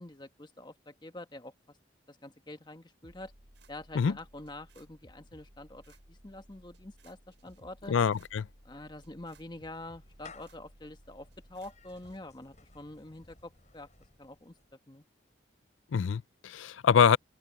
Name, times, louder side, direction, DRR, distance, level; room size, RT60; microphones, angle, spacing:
voice 1, 0.0-1.8 2.1-3.3 3.7-7.9 8.6-13.9 14.2-15.0, left 2 dB, 25° left, 1.2 m, -46 dB
sound 1, 3.0-12.2, right 1 dB, 70° right, 7.1 m, -58 dB
voice 2, 7.9-8.5 15.9-17.2, left 7 dB, 90° left, 0.4 m, -25 dB
Clapping / Meow, 8.5-14.8, left 4 dB, 40° left, 5.8 m, -58 dB
head